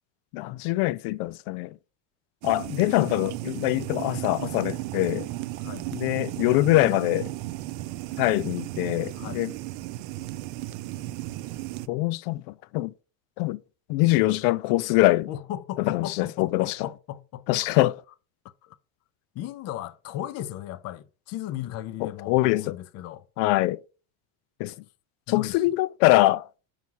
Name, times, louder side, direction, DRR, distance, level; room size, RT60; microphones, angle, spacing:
voice 1, 0.3-1.7 2.4-5.3 5.9-7.3 8.2-9.5 11.9-12.9 13.4-13.6 13.9-15.3 15.8-16.7 17.5-17.9 22.0-22.8 23.4-23.8 24.6-24.7 25.3-26.5, left 18 dB, 90° left, 0.6 m, -23 dB
sound 1, 2.4-11.9, right 16 dB, 60° right, 0.5 m, -35 dB
voice 2, 5.6-5.9 9.1-9.4 15.3-17.7 18.6-18.8 19.3-23.3 25.3-25.6, left 12 dB, 35° left, 0.4 m, -36 dB
5.8 x 4.7 x 5.5 m
cardioid pair, 170°, 45 cm